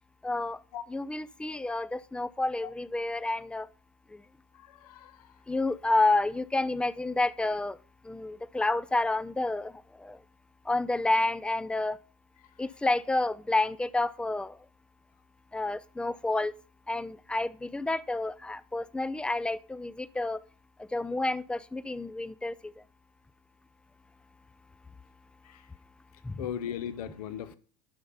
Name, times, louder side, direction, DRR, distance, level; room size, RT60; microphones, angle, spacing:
voice 1, 0.2-0.6 0.9-3.7 4.1-4.2 5.5-7.8 8.0-10.2 10.7-12.0 12.6-14.6 15.5-16.6 16.9-20.4 20.8-22.7 26.2-26.4, left 2 dB, 5° left, 0.4 m, -29 dB
voice 2, 4.5-5.4 8.3-8.4 12.4-12.7 25.4-25.7 26.1-27.6, left 9 dB, 70° left, 0.9 m, -39 dB
11.0 x 5.6 x 5.4 m
hypercardioid pair, 95°, 20 cm